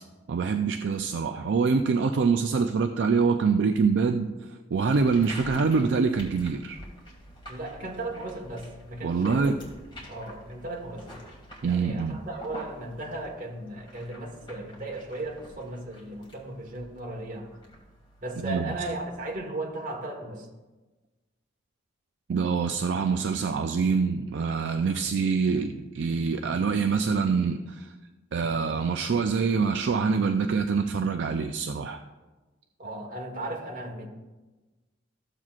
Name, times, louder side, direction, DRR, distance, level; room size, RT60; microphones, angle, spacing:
voice 1, 0.3-4.3 4.7-6.8 9.0-9.6 11.6-12.2 18.4-18.7 22.3-27.9 28.3-32.0, right 5 dB, 65° right, 6 dB, 0.4 m, -25 dB
sound 1, 4.7-19.3, equal, 25° left, 2.1 m, -47 dB
voice 2, 7.5-9.5 10.0-11.1 11.6-17.5 18.2-20.5 32.8-34.1, right 2 dB, 45° right, 1 dB, 1.3 m, -36 dB
13.5 x 7.4 x 2.4 m, 1.2 s
head